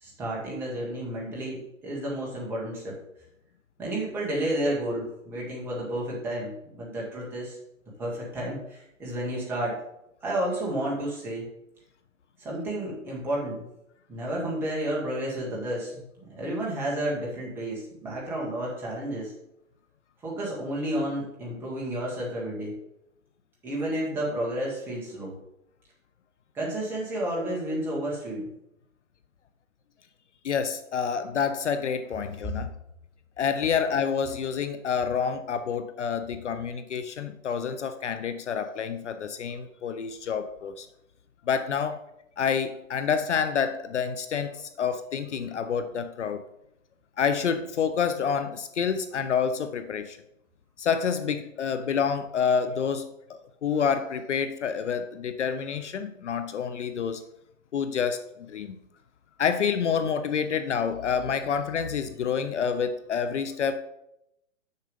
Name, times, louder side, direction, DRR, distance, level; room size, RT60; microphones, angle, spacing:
voice 1, 0.0-3.0 3.8-7.6 8.0-9.8 10.2-11.5 12.4-13.6 14.1-16.0 16.4-19.3 20.2-22.8 23.6-25.3 26.5-28.5, right 1 dB, 5° right, -5 dB, 1.3 m, -31 dB
voice 2, 30.4-32.7 33.4-40.9 41.5-42.0 42.4-46.4 47.2-50.2 50.8-53.1 53.6-57.2 57.7-58.8 59.4-63.8, left 7 dB, 60° left, 10 dB, 0.7 m, -28 dB
6.6 x 6.6 x 5.1 m, 0.83 s
hypercardioid pair, 165°, 40 cm